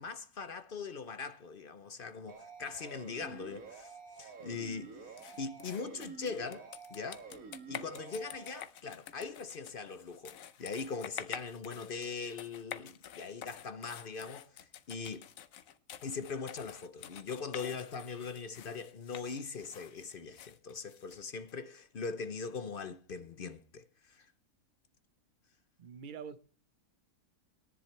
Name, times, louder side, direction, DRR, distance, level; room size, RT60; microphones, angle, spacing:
voice 1, 0.0-7.3 7.7-15.3 16.0-24.3, left 5 dB, 50° left, 0.7 m, -41 dB
sound 1, 2.3-8.6, right 5 dB, 70° right, 1.9 m, -49 dB
sound 2, 5.2-21.5, left 10 dB, 70° left, 1.1 m, -48 dB
voice 2, 25.8-26.4, right 6 dB, 45° right, 0.7 m, -45 dB
18.0 x 10.5 x 3.2 m
omnidirectional pair, 1.5 m